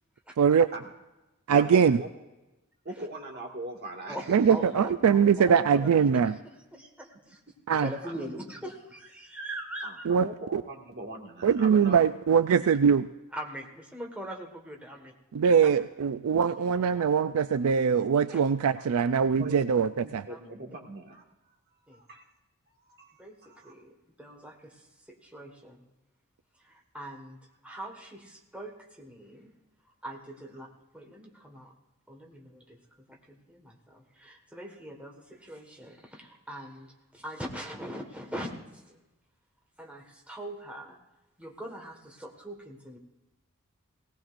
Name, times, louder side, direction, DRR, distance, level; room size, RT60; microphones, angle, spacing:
voice 1, 0.4-0.7 1.5-2.0 4.3-6.4 7.7-7.9 10.1-10.6 11.4-13.1 15.3-20.2, right 7 dB, 70° right, 11 dB, 0.4 m, -22 dB
voice 2, 1.5-2.1 2.9-5.1 5.6-5.7 7.7-8.4 9.8-12.1 19.3-21.2 21.9-22.2 23.0-23.7, right 2 dB, 45° right, 0 dB, 2.0 m, -41 dB
voice 3, 4.1-6.1 6.4-7.4 7.7-10.0 11.8-11.9 13.3-15.1 15.6-15.8 16.4-17.3 18.3-18.4 18.7-18.8 20.3-20.4 21.9-22.0 23.2-25.9 26.6-29.5 29.8-31.7 32.1-39.0 39.8-41.0 41.4-43.0, right 1 dB, 5° right, 0 dB, 1.6 m, -42 dB
18.5 x 18.0 x 2.6 m, 1.0 s
head